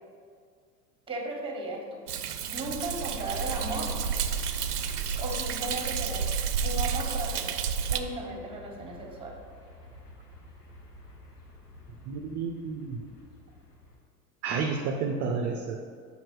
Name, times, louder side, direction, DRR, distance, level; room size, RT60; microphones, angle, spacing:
voice 1, 1.1-2.0 2.5-3.9 5.2-6.3 6.6-7.6 7.9-9.3, right 2 dB, 10° right, 1 dB, 1.6 m, -36 dB
Thunder, 2.1-8.0, right 6 dB, 80° right, 0.6 m, -30 dB
sound 1, 3.1-14.0, right 1 dB, 90° left, 1.4 m, -48 dB
voice 2, 12.0-13.0 14.4-15.8, right 5 dB, 35° right, 2 dB, 0.7 m, -31 dB
7.6 x 5.7 x 4.7 m, 2.1 s
figure-of-eight pair, 85°, 46 cm